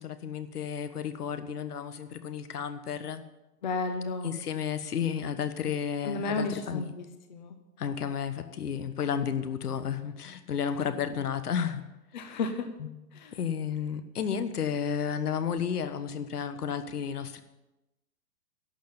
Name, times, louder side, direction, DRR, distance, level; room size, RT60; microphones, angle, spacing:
voice 1, 0.0-3.2 4.2-6.9 7.8-11.8 13.3-17.4, left 7 dB, 70° left, 11 dB, 1.4 m, -32 dB
voice 2, 3.6-4.4 6.0-7.6 12.1-12.6 13.1-13.4, left 3 dB, 30° left, 6 dB, 1.0 m, -33 dB
11.5 x 7.0 x 9.6 m, 0.97 s
hypercardioid pair, 170°, 47 cm